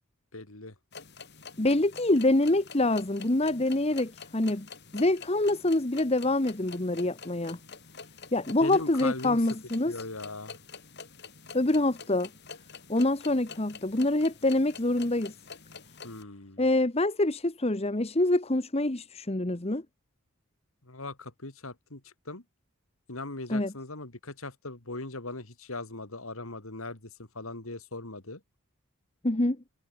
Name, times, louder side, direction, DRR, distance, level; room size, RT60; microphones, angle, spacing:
voice 1, 0.3-0.7 8.6-9.4 9.8-10.6 16.0-16.6 20.8-22.4 23.1-28.4, left 2 dB, 75° left, 3.0 m, -39 dB
sound 1, 0.9-16.2, left 5 dB, 50° left, 6.5 m, -47 dB
voice 2, 1.6-4.7 4.9-7.6 8.3-9.9 11.5-12.3 12.9-15.3 16.6-19.8 23.5-23.7 29.2-29.6, left 2 dB, 30° left, 1.2 m, -26 dB
head